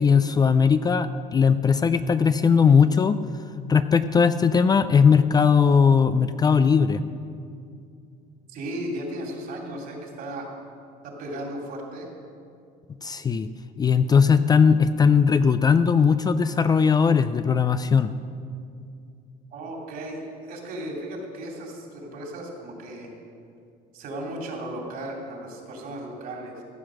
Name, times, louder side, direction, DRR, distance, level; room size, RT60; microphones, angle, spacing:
voice 1, 0.0-3.2 3.7-7.0 13.0-13.5 13.8-18.1, left 6 dB, 25° left, 12 dB, 0.3 m, -19 dB
voice 2, 8.5-10.5 11.0-12.1 19.5-23.1 23.9-26.6, right 1 dB, 65° right, 0 dB, 2.9 m, -35 dB
15.0 x 7.7 x 6.3 m, 2.4 s
cardioid pair, 125°, 17 cm